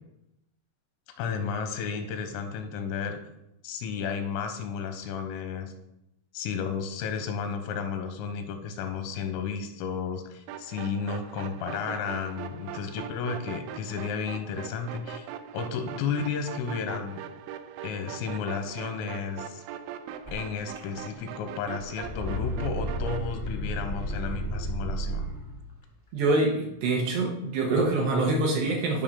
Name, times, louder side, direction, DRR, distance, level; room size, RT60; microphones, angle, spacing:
voice 1, 1.2-3.2 3.6-5.7 6.3-15.3 15.5-17.2 17.8-19.6 20.3-25.3, left 6 dB, 85° left, 7 dB, 3.6 m, -33 dB
sound 1, 10.5-23.3, right 9 dB, 90° right, 2.6 m, -41 dB
sound 2, 20.3-20.4 20.7-21.3 21.6-25.6, right 1 dB, 30° left, 0.7 m, -33 dB
voice 2, 26.1-29.0, right 2 dB, 70° right, 0 dB, 2.7 m, -25 dB
12.0 x 5.3 x 3.8 m, 0.83 s
omnidirectional pair, 5.8 m